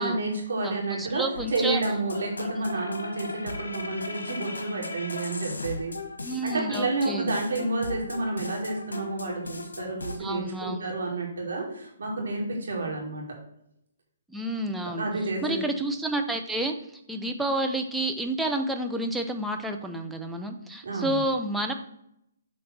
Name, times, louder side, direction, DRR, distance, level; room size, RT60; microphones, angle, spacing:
voice 1, 0.0-5.9 6.4-13.2 14.8-15.6 20.8-21.3, right 2 dB, 70° right, 0 dB, 2.4 m, -30 dB
voice 2, 0.6-1.8 2.4-2.5 6.2-7.4 10.2-10.8 14.3-15.1 15.4-16.7 17.1-21.7, right 1 dB, 5° right, 4 dB, 0.7 m, -30 dB
sound 1, 1.3-10.2, left 3 dB, 85° left, 1.1 m, -37 dB
6.9 x 3.3 x 5.9 m, 0.76 s
hypercardioid pair, 140°, 0 cm